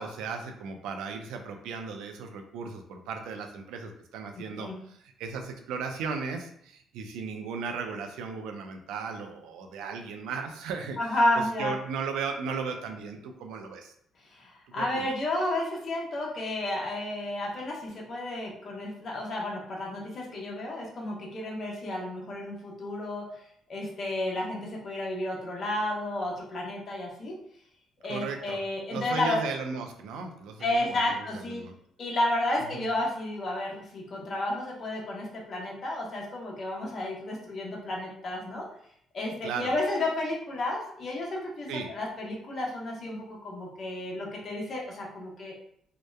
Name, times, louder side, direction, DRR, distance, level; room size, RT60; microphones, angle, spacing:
voice 1, 0.0-11.2 11.6-13.9 14.7-15.1 28.1-28.6 28.9-31.7 32.6-32.9 39.4-39.7 41.7-41.9, right 5 dB, 80° right, 5 dB, 0.3 m, -36 dB
voice 2, 4.4-4.8 11.0-11.7 14.3-23.2 23.7-27.3 28.0-29.4 30.6-31.6 32.0-38.7 39.1-45.5, left 1 dB, 55° left, -2 dB, 0.8 m, -32 dB
2.8 x 2.1 x 2.3 m, 0.68 s
supercardioid pair, 60°, 0 cm